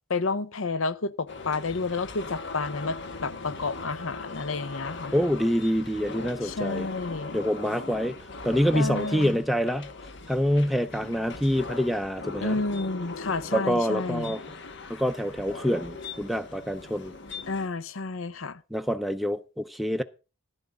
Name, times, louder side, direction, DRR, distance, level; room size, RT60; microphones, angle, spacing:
voice 1, 0.1-5.1 6.4-7.4 8.7-9.4 12.4-14.4 17.5-18.6, left 3 dB, 90° left, 0.8 m, -30 dB
sound 1, 1.3-17.7, left 3 dB, 60° left, 1.3 m, -40 dB
voice 2, 5.1-6.9 7.3-8.1 8.4-9.9 10.3-12.6 13.5-14.4 14.9-17.1 18.7-20.0, equal, ahead, 0.5 m, -26 dB
11.5 x 10.5 x 3.8 m
head